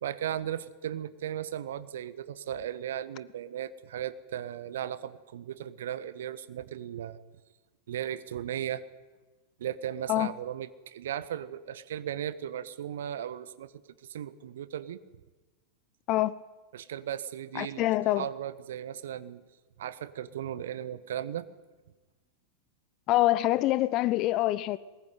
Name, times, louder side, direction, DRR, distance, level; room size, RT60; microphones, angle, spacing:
voice 1, 0.0-7.2 7.9-8.8 9.6-13.8 14.1-15.0 16.7-17.8 18.2-19.4 19.8-21.5, right 10 dB, 60° right, 1.4 m, -36 dB
voice 2, 17.5-18.3 23.1-24.8, left 16 dB, 40° left, 0.9 m, -25 dB
23.0 x 20.5 x 9.4 m
figure-of-eight pair, 90°, 0 cm